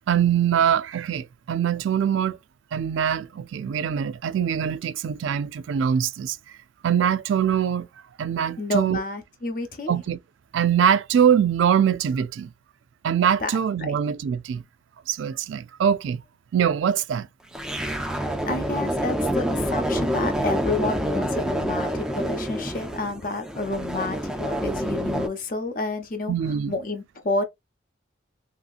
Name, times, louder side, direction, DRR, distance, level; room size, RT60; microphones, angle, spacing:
voice 1, 0.1-2.4 2.7-6.4 6.8-7.9 8.2-9.0 9.9-10.2 10.5-12.5 13.0-14.6 15.1-16.2 16.5-17.3 26.3-26.7, right 8 dB, 85° right, 0.3 m, -23 dB
voice 2, 8.6-9.9 13.4-14.0 17.9-26.3 26.7-27.4, left 2 dB, 45° left, 0.7 m, -30 dB
sound 1, 17.5-25.3, equal, 5° right, 0.3 m, -27 dB
3.1 x 2.8 x 2.4 m
head